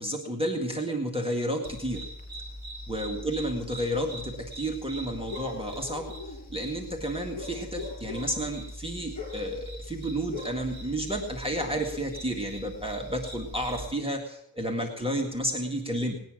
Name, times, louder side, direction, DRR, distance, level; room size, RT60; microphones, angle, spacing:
voice 1, 0.0-2.1 2.9-16.2, right 1 dB, 15° right, 2 dB, 1.8 m, -31 dB
sound 1, 1.6-13.9, left 1 dB, 45° left, 4.9 m, -41 dB
19.5 x 9.5 x 6.3 m, 0.78 s
wide cardioid pair, 95°, 39 cm